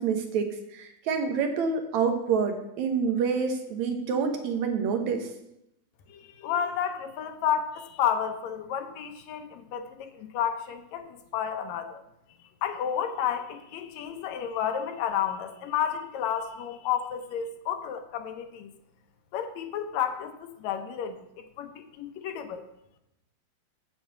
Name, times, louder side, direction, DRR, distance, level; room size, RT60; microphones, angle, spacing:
voice 1, 0.0-5.3, right 5 dB, 75° right, 5 dB, 2.3 m, -27 dB
voice 2, 6.1-12.0 12.6-18.7 19.3-22.7, left 9 dB, 75° left, 7 dB, 1.9 m, -31 dB
9.6 x 4.2 x 7.5 m, 0.83 s
omnidirectional pair, 3.3 m